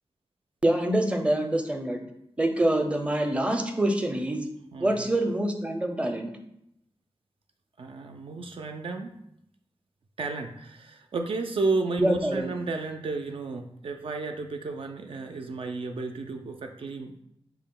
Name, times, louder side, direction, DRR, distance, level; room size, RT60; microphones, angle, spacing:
voice 1, 0.6-2.0 2.4-4.5 4.8-6.3 12.0-12.5, right 1 dB, 10° right, 5 dB, 0.5 m, -25 dB
voice 2, 4.7-5.0 7.8-9.2 10.2-17.2, right 3 dB, 60° right, 4 dB, 0.4 m, -32 dB
5.9 x 2.1 x 3.7 m, 0.76 s
wide cardioid pair, 95°, 10 cm